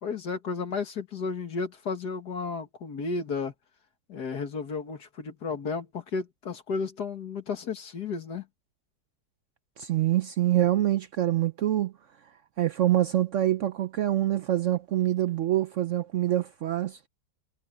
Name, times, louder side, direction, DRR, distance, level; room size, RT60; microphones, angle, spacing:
voice 1, 0.0-3.5 4.1-8.4, left 4 dB, 65° left, 2.2 m, -33 dB
voice 2, 9.8-11.9 12.6-17.1, right 13 dB, 80° right, 0.6 m, -25 dB
omnidirectional pair, 1.9 m